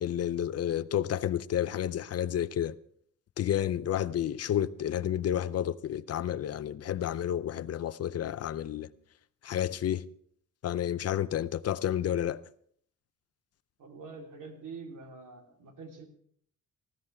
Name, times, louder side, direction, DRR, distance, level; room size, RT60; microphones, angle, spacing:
voice 1, 0.0-2.8 3.4-8.9 9.4-10.0 10.6-12.4, left 10 dB, 50° left, 0.5 m, -30 dB
voice 2, 13.8-16.0, right 4 dB, 70° right, 3.5 m, -45 dB
19.0 x 16.0 x 3.4 m
wide cardioid pair, 160°, 32 cm